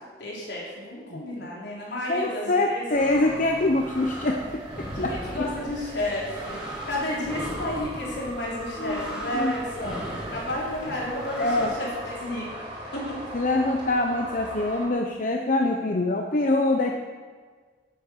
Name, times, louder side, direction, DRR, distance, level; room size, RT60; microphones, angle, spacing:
voice 1, 0.2-2.9 4.9-11.9 12.2-13.2, left 1 dB, 75° left, -5 dB, 4.0 m, -32 dB
voice 2, 2.1-5.4 8.8-9.1 9.3-9.5 9.9-10.0 11.4-11.7 13.3-17.0, left 2 dB, 50° left, 2 dB, 0.8 m, -25 dB
sound 1, 2.9-14.9, right 1 dB, 30° right, 3.5 m, -40 dB
sound 2, 3.3-11.7, equal, 5° right, 2.9 m, -38 dB
10.5 x 8.7 x 6.5 m, 1.5 s
head